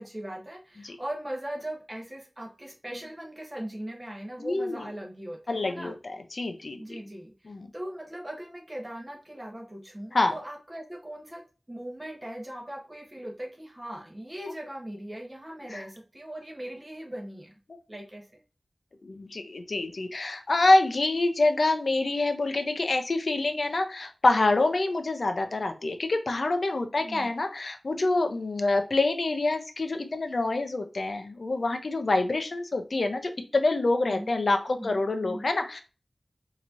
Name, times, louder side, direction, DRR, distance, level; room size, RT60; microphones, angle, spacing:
voice 1, 0.0-5.9 6.8-17.5 17.9-18.3 27.0-27.3 34.0-34.3 34.7-35.5, right 1 dB, 25° right, -1 dB, 1.3 m, -39 dB
voice 2, 4.4-4.9 5.5-7.0 7.5-7.7 10.1-10.3 15.7-15.8 17.7-17.8 19.0-35.8, left 2 dB, 70° left, 6 dB, 0.6 m, -26 dB
4.5 x 2.9 x 2.6 m, 0.34 s
wide cardioid pair, 70°, 0 cm